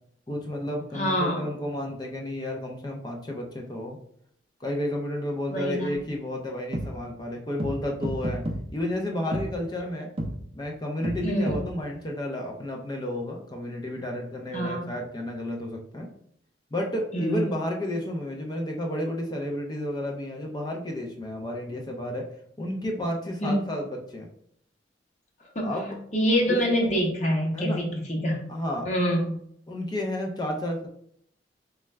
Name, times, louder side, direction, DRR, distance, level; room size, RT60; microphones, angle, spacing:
voice 1, 0.3-4.0 4.6-8.4 8.7-10.1 10.5-16.1 16.7-22.3 22.6-24.3 25.6-26.0 26.5-26.6 27.5-27.8 28.5-28.9 29.7-30.9, left 1 dB, 20° left, 1 dB, 0.5 m, -31 dB
voice 2, 0.9-1.4 5.5-5.9 11.2-11.6 14.5-14.8 17.1-17.5 23.4-23.6 25.5-25.7 26.1-28.4 28.8-29.4, equal, 40° left, -2 dB, 0.9 m, -25 dB
sound 1, 6.0-6.1 6.7-6.9 7.6-7.7 8.0-8.6 9.3-9.4 10.2-10.3 11.0-11.2 11.5-11.6, right 1 dB, 30° right, 0.5 m, -29 dB
4.1 x 2.3 x 3.2 m, 0.67 s
head